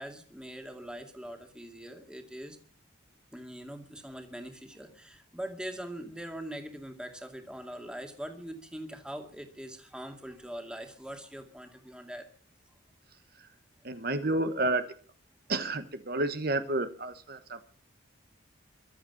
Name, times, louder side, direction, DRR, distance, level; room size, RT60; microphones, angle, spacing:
voice 1, 0.0-2.6 3.3-12.3, right 1 dB, 5° right, 4 dB, 2.3 m, -42 dB
voice 2, 13.8-14.9 15.5-17.6, right 2 dB, 50° right, 9 dB, 1.2 m, -30 dB
23.0 x 8.0 x 7.1 m, 0.43 s
head